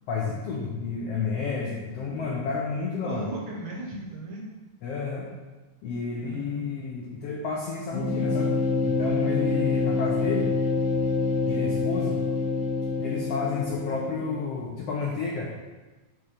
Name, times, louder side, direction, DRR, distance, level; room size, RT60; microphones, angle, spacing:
voice 1, 0.1-3.3 4.8-5.3 5.8-10.5 11.4-12.2 13.0-15.5, left 4 dB, 85° left, -1 dB, 1.3 m, -31 dB
voice 2, 3.0-4.5 6.2-6.8, right 2 dB, 70° right, -1 dB, 1.8 m, -37 dB
sound 1, 7.9-14.6, left 3 dB, 60° left, 1.3 m, -26 dB
7.0 x 3.2 x 5.6 m, 1.2 s
omnidirectional pair, 3.7 m